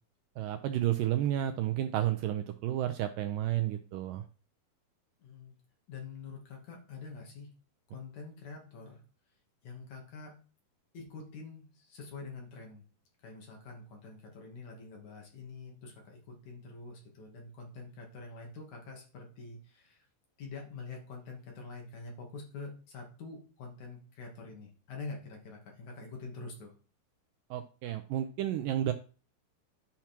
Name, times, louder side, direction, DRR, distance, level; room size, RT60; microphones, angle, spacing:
voice 1, 0.4-4.2 27.5-28.9, right 12 dB, 90° right, 7 dB, 2.0 m, -31 dB
voice 2, 5.2-5.5 5.9-7.5 7.9-9.0 9.6-10.3 10.9-12.8 13.2-20.0 20.4-26.7, left 4 dB, 50° left, 1 dB, 3.5 m, -46 dB
10.5 x 5.8 x 4.5 m, 0.37 s
omnidirectional pair, 4.5 m